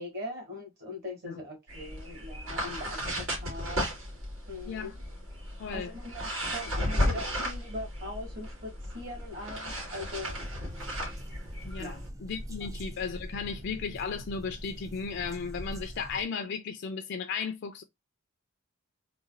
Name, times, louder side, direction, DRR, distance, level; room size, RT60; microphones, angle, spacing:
voice 1, 0.0-3.8 4.5-4.9 5.7-10.4 11.8-12.0 12.6-12.7, left 1 dB, 50° right, 1.8 m, -41 dB
sound 1, 1.7-12.1, equal, 75° right, 2.2 m, -34 dB
voice 2, 5.6-5.9 11.6-17.8, left 5 dB, 55° left, 0.4 m, -35 dB
sound 2, 10.2-16.2, equal, 15° right, 0.3 m, -43 dB
3.9 x 2.3 x 2.5 m
head